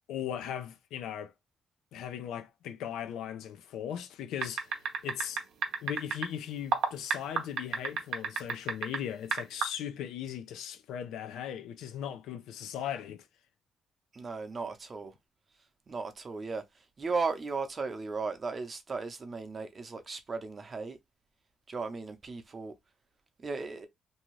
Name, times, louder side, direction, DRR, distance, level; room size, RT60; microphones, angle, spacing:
voice 1, 0.1-1.3 1.9-5.4 5.8-13.2, left 9 dB, 85° left, 0.4 m, -38 dB
sound 1, 4.4-6.3 6.7-9.0 9.3-9.6, right 6 dB, 75° right, 0.7 m, -29 dB
voice 2, 14.1-15.1 15.9-16.6 17.0-21.0 21.7-22.7 23.4-23.9, right 4 dB, 35° right, 0.7 m, -36 dB
2.7 x 2.4 x 3.1 m
cardioid pair, 90°, 0 cm